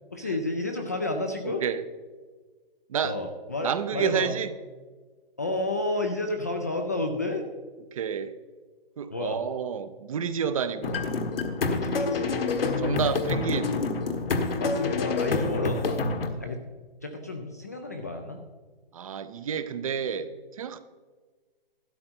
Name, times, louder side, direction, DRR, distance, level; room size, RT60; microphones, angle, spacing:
voice 1, 0.1-1.6 3.0-4.3 5.4-7.5 9.1-9.4 11.7-12.4 14.6-16.0 16.4-16.6 17.0-18.4, left 2 dB, 20° left, 4 dB, 0.3 m, -31 dB
voice 2, 1.4-1.8 2.9-3.2 3.6-4.5 7.9-8.3 9.0-11.0 12.8-13.7 18.9-20.3 20.6-20.8, right 7 dB, 35° right, 13 dB, 0.6 m, -29 dB
sound 1, 10.8-16.3, left 4 dB, 70° left, 1.5 m, -27 dB
12.5 x 10.0 x 4.3 m, 1.4 s
hypercardioid pair, 160°, 30 cm